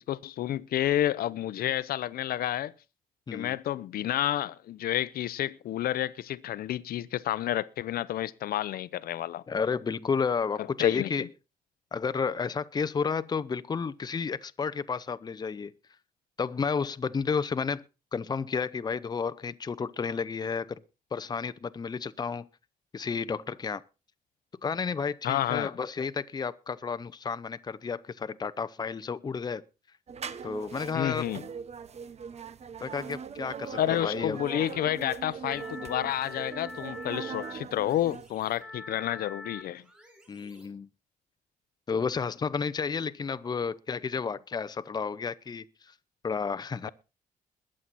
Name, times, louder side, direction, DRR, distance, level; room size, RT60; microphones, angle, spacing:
voice 1, 0.1-2.7 3.3-9.4 10.8-11.1 25.2-25.7 30.9-31.4 33.8-39.8, left 12 dB, 75° left, 0.7 m, -30 dB
voice 2, 9.5-11.3 11.9-15.7 16.4-17.8 18.1-20.8 21.1-22.5 22.9-23.8 24.6-29.6 30.4-31.3 32.8-34.4 40.3-40.9 41.9-45.6 46.2-46.9, left 5 dB, 25° left, 0.7 m, -31 dB
sound 1, 30.1-38.3, right 6 dB, 45° right, 1.0 m, -40 dB
sound 2, 35.3-40.7, left 3 dB, 5° right, 4.9 m, -45 dB
21.5 x 7.7 x 4.1 m
cardioid pair, 125°, 16 cm